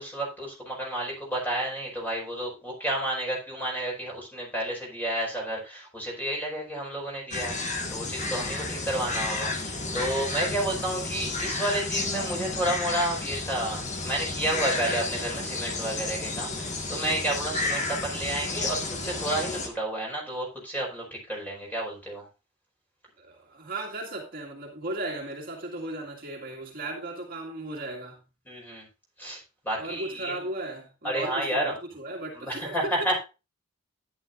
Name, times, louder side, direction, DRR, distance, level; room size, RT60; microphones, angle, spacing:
voice 1, 0.0-22.3 28.4-28.8 29.2-30.5 31.0-31.7 32.3-33.2, right 1 dB, 10° left, 5.0 m, -31 dB
sound 1, 7.3-19.7, left 3 dB, 35° left, 1.7 m, -31 dB
voice 2, 23.2-28.2 29.8-33.1, right 2 dB, 45° right, 2.0 m, -36 dB
11.0 x 10.5 x 2.5 m
head